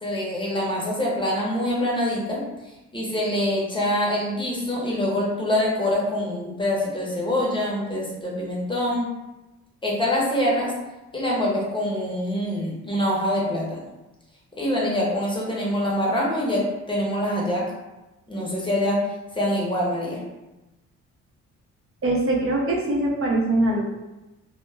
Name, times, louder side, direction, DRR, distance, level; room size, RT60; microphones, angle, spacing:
voice 1, 0.0-2.4 2.9-9.1 9.8-10.7 11.1-13.8 14.6-17.7 18.3-19.0 19.3-20.2, left 1 dB, 15° left, -4 dB, 0.7 m, -25 dB
voice 2, 22.0-23.8, right 2 dB, 45° right, -3 dB, 0.6 m, -22 dB
2.1 x 2.1 x 3.3 m, 1.0 s
cardioid pair, 90°, 30 cm